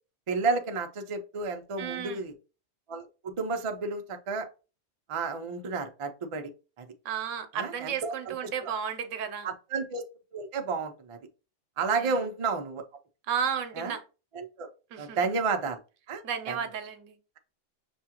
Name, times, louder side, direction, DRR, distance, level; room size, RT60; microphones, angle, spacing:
voice 1, 0.3-2.3 2.9-4.5 5.1-6.5 6.8-6.9 7.5-8.3 8.6-8.7 9.4-10.0 10.3-11.2 11.8-12.8 13.8-13.9 14.3-14.7 15.0-15.8 16.1-16.6, right 4 dB, 45° right, 0.4 m, -31 dB
voice 2, 1.8-2.2 7.0-9.5 11.9-12.3 13.3-14.0 14.9-15.4 16.2-17.2, right 7 dB, 90° right, 1.0 m, -33 dB
6.1 x 2.4 x 2.8 m
omnidirectional pair, 1.3 m